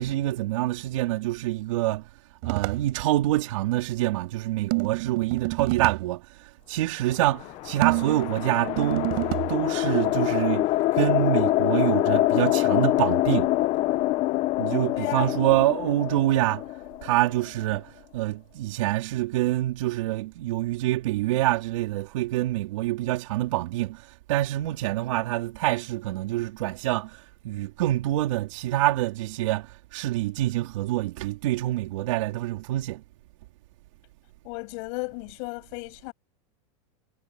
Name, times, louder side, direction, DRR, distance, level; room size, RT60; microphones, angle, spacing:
voice 1, 0.0-2.1 2.4-9.2 9.5-10.7 10.9-13.5 14.6-16.6 17.0-33.0, right 15 dB, 70° right, 4.2 m, -26 dB
sound 1, 2.4-2.9 4.7-6.1 7.8-9.6, right 30 dB, 55° right, 5.2 m, -28 dB
sound 2, 7.2-17.6, left 17 dB, 35° left, 1.0 m, -25 dB
voice 2, 14.9-15.5 34.4-36.1, left 34 dB, 50° left, 7.5 m, -34 dB
supercardioid pair, 150°, 17 cm